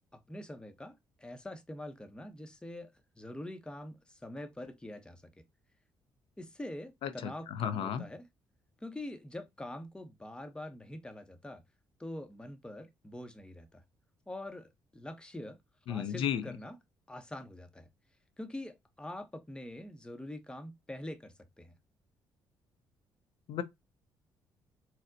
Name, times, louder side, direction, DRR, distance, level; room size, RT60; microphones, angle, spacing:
voice 1, 0.1-2.9 3.2-5.2 6.4-8.3 8.8-11.6 12.0-13.8 14.3-15.6 15.9-16.8 17.1-17.9 18.4-21.8, left 1 dB, 10° left, 0.7 m, -44 dB
voice 2, 7.0-8.0 15.9-16.4 23.5-23.6, left 9 dB, 70° left, 0.5 m, -34 dB
4.1 x 2.0 x 2.6 m
supercardioid pair, 65°, 9 cm